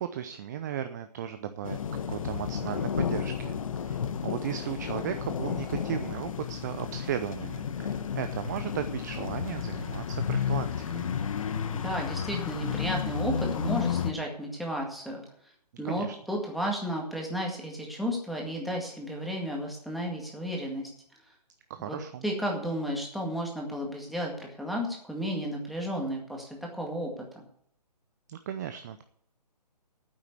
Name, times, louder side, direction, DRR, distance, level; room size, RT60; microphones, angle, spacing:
voice 1, 0.0-11.1 15.8-16.2 21.7-22.2 28.3-29.0, right 10 dB, 25° right, 9 dB, 0.5 m, -36 dB
sound 1, 1.6-14.1, left 8 dB, 50° left, 1.3 m, -32 dB
voice 2, 11.7-15.2 15.8-20.9 21.8-22.0 22.2-26.5 26.7-27.1, equal, ahead, -1 dB, 1.9 m, -33 dB
9.3 x 8.1 x 8.1 m, 0.67 s
figure-of-eight pair, 140°, 21 cm